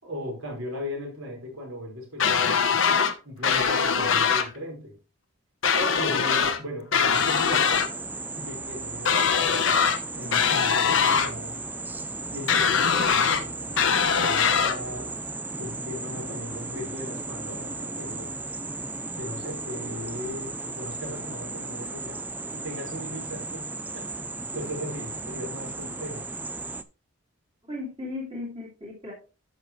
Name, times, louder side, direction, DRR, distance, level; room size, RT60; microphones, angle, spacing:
voice 1, 0.0-2.8 3.2-4.9 5.7-7.8 8.3-9.6 10.1-11.6 12.3-15.1 15.6-18.3 19.2-22.2 22.5-26.2, left 1 dB, 70° right, -1 dB, 4.9 m, -38 dB
sound 1, 2.2-3.1 3.4-4.5 5.6-6.6 6.9-7.9 9.0-10.0 10.3-11.3 12.5-13.4 13.8-14.7, left 6 dB, 60° left, 0.9 m, -22 dB
sound 2, 7.1-26.8, right 3 dB, 10° right, 0.4 m, -35 dB
voice 2, 10.2-11.1 27.7-29.1, left 2 dB, 25° right, -3 dB, 2.3 m, -37 dB
10.0 x 6.6 x 3.1 m, 0.33 s
head